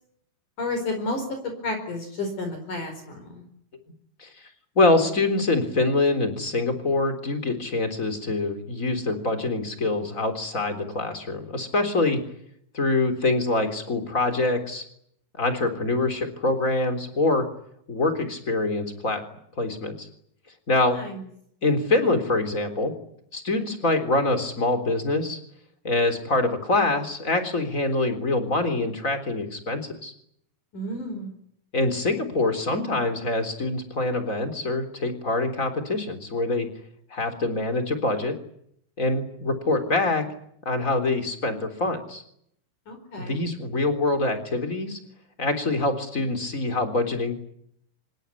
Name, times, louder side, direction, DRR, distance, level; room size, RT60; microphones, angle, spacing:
voice 1, 0.6-3.4 20.9-21.2 30.7-31.3 42.9-43.4, left 2 dB, 50° left, 5 dB, 5.9 m, -31 dB
voice 2, 4.7-12.2 12.7-14.8 15.4-17.5 17.9-19.2 19.6-20.1 20.7-21.0 21.6-22.9 23.3-25.4 25.8-30.1 31.7-36.7 37.1-38.3 39.0-40.2 40.6-42.2 43.2-45.0 45.4-47.4, left 2 dB, 20° left, 8 dB, 3.5 m, -25 dB
26.5 x 21.5 x 9.9 m, 0.71 s
omnidirectional pair, 5.0 m